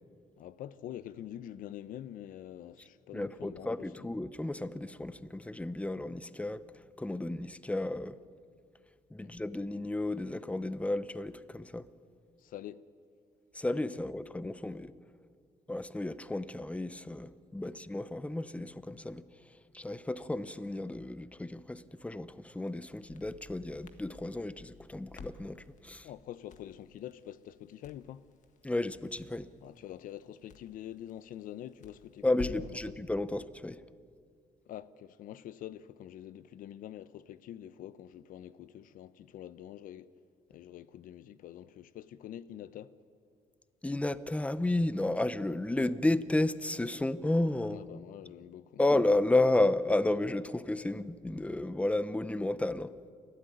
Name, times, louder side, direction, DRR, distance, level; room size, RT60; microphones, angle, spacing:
voice 1, 0.4-4.1 9.2-9.3 12.4-12.8 17.6-17.7 26.0-28.2 29.6-33.0 34.7-40.1 40.5-42.9 47.7-48.9, left 11 dB, 80° left, 0.8 m, -46 dB
voice 2, 3.1-8.2 9.1-11.9 13.5-14.9 15.7-19.2 19.7-26.1 28.6-29.5 32.2-33.8 43.8-47.9 48.8-52.9, left 2 dB, 10° left, 0.8 m, -32 dB
Crackle, 22.6-32.8, left 5 dB, 60° left, 1.7 m, -52 dB
29.0 x 12.5 x 9.4 m
cardioid pair, 90°, 14 cm